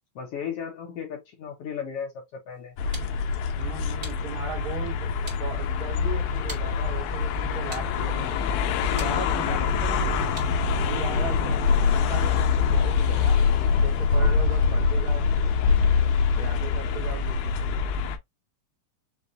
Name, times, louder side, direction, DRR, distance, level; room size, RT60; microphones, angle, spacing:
voice 1, 0.2-2.8, left 7 dB, 65° left, 1.6 m, -35 dB
sound 1, 2.5-10.8, right 1 dB, 20° right, 1.5 m, -47 dB
sound 2, 2.8-18.2, left 5 dB, 85° left, 2.5 m, -24 dB
voice 2, 3.6-8.5 8.9-10.3 10.8-11.7 11.9-13.5 13.7-15.3 16.4-17.8, right 6 dB, 55° right, 1.6 m, -38 dB
6.9 x 2.6 x 2.6 m
omnidirectional pair, 4.0 m